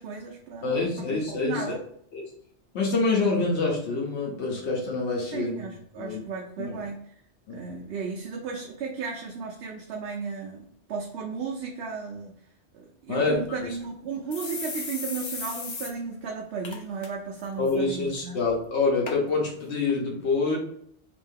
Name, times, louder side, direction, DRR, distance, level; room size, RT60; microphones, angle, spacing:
voice 1, 0.0-1.8 5.3-7.1 7.5-12.3 12.7-18.4, right 5 dB, 75° right, -1 dB, 0.8 m, -35 dB
voice 2, 0.6-1.7 2.1-2.2 2.7-5.6 6.0-6.2 6.6-6.8 7.5-7.6 13.1-13.4 17.6-20.6, left 3 dB, 80° left, -1 dB, 1.1 m, -26 dB
sound 1, 13.4-13.5 13.8-13.9 14.3-15.9 16.3-16.4 16.6-17.1 17.4-17.7 18.4-18.5 19.1-19.2 19.9-20.0, left 4 dB, 45° left, 0.3 m, -36 dB
3.0 x 2.7 x 3.6 m, 0.67 s
omnidirectional pair, 1.1 m